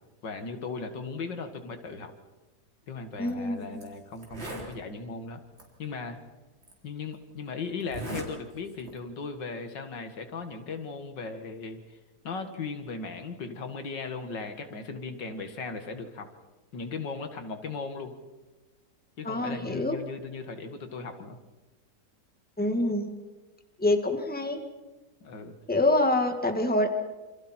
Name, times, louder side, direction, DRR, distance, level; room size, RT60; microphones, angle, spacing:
voice 1, 0.2-2.1 2.9-5.4 5.8-6.2 6.8-12.0 12.2-16.3 16.7-18.1 19.2-21.4 25.2-25.5, left 4 dB, 90° left, 7 dB, 2.6 m, -37 dB
Zipper (clothing), 3.1-3.3 3.8-3.9 4.2-4.7 5.6-5.7 6.6-6.7 7.8-8.3 8.6-9.0, right 2 dB, 35° right, 4.3 m, -38 dB
voice 2, 3.2-3.8 19.2-20.0 22.6-23.1 23.8-24.6 25.7-26.9, left 1 dB, 5° left, 5 dB, 1.9 m, -26 dB
28.0 x 27.0 x 4.5 m, 1.2 s
omnidirectional pair, 1.9 m